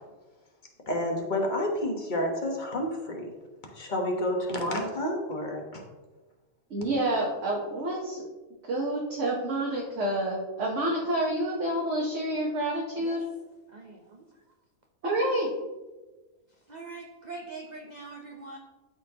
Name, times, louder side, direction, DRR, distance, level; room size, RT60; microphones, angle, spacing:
voice 1, 0.9-3.3 3.7-5.8, left 1 dB, 35° left, 1 dB, 1.2 m, -29 dB
voice 2, 6.7-8.2 8.7-13.2 15.0-15.5, right 1 dB, 60° right, -3 dB, 1.4 m, -28 dB
voice 3, 13.7-14.2 16.7-18.6, right 3 dB, 40° right, 1 dB, 0.6 m, -43 dB
12.0 x 4.4 x 2.9 m, 1.2 s
omnidirectional pair, 1.5 m